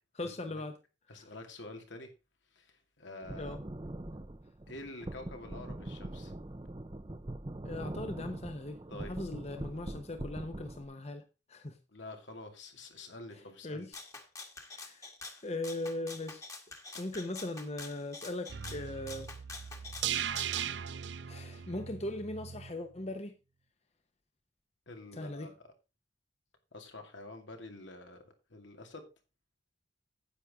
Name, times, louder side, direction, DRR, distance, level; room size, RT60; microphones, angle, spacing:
voice 1, 0.2-0.8 1.2-1.3 3.4-3.6 7.6-11.2 11.5-11.8 13.3-14.0 14.6-15.1 15.4-16.5 17.0-19.3 19.9-20.4 21.3-23.3 25.1-25.5, left 2 dB, 35° left, 1.0 m, -39 dB
voice 2, 1.1-2.1 2.5-3.6 4.7-6.3 8.9-9.2 11.9-13.9 24.9-25.5 26.7-28.2 28.5-29.1, left 2 dB, 80° left, 2.4 m, -47 dB
sound 1, 3.2-10.9, right 1 dB, 25° right, 0.7 m, -43 dB
Rattle (instrument), 13.9-20.7, left 3 dB, 15° left, 1.5 m, -47 dB
sound 2, 18.5-22.7 23.0-23.1, right 9 dB, 70° right, 0.5 m, -38 dB
9.9 x 8.5 x 3.6 m
head